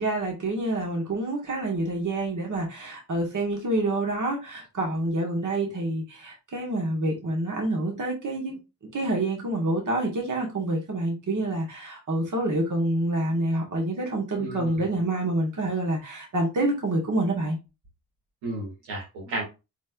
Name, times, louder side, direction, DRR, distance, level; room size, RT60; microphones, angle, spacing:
voice 1, 0.0-8.5 8.9-17.6, right 2 dB, 50° right, 1.9 m, -27 dB
voice 2, 14.4-14.9 18.4-19.4, right 2 dB, 85° right, 2.4 m, -33 dB
4.4 x 4.1 x 2.5 m
hypercardioid pair, 45°, 41 cm